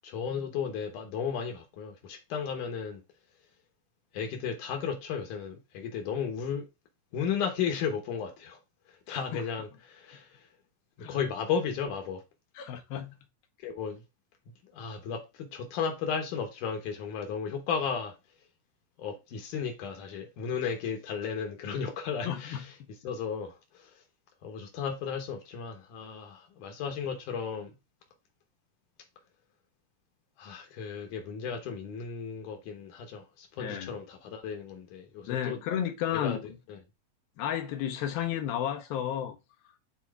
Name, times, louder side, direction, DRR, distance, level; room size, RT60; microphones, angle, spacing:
voice 1, 0.0-3.0 4.1-6.7 7.1-8.6 8.9-10.5 11.0-12.2 13.6-14.0 14.6-18.2 19.0-22.7 23.0-24.0 24.4-27.7 30.4-35.6 36.1-36.4 36.7-36.8, left 6 dB, 70° left, 2.2 m, -34 dB
voice 2, 9.1-9.4 11.0-11.2 12.6-13.2 22.3-22.9 33.6-34.0 35.3-36.4 37.4-39.4, left 10 dB, 90° left, 2.7 m, -33 dB
10.5 x 4.1 x 2.3 m
omnidirectional pair, 4.1 m